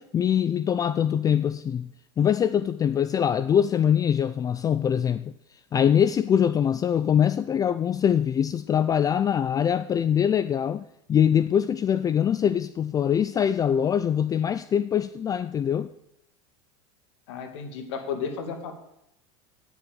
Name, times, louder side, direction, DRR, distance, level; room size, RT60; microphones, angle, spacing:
voice 1, 0.0-1.9 2.2-5.3 5.7-15.9, left 8 dB, 25° left, 0.4 m, -23 dB
voice 2, 17.3-18.7, left 6 dB, 75° left, 2.3 m, -33 dB
9.4 x 7.0 x 8.8 m
supercardioid pair, 110°, 15 cm